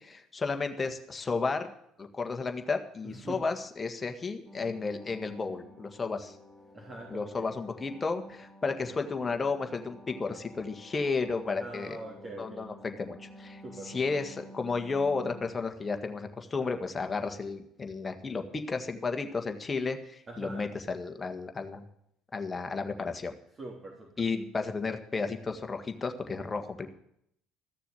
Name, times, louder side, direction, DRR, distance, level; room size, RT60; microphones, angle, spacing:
voice 1, 0.0-1.7 2.0-6.4 7.1-12.0 12.4-21.8 22.3-23.3 24.2-26.9, left 4 dB, 25° left, 6 dB, 1.7 m, -33 dB
voice 2, 3.0-3.5 6.7-7.5 11.6-12.6 13.6-14.0 20.3-20.7 23.6-24.1, right 2 dB, 35° right, -2 dB, 3.6 m, -43 dB
sound 1, 4.4-15.5, left 1 dB, 10° right, 2.7 m, -51 dB
14.5 x 6.8 x 9.1 m, 0.75 s
hypercardioid pair, 65°, 0 cm